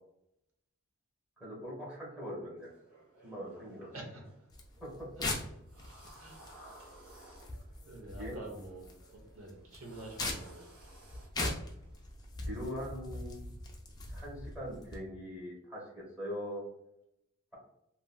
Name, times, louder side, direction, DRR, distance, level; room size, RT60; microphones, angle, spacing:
voice 1, 1.4-2.7 3.2-3.9 4.8-5.1 8.2-8.4 12.4-13.5 14.1-16.6, equal, 5° right, -5 dB, 1.1 m, -42 dB
sound 1, 2.6-12.8, right 1 dB, 55° right, 1.4 m, -59 dB
voice 2, 3.9-4.3 5.2-5.3 6.2-6.6 7.8-8.8 9.1-10.7, right 1 dB, 85° right, 1 dB, 0.8 m, -47 dB
sound 2, 4.5-15.0, left 2 dB, 20° left, 0.3 m, -41 dB
2.9 x 2.5 x 2.2 m, 0.79 s
head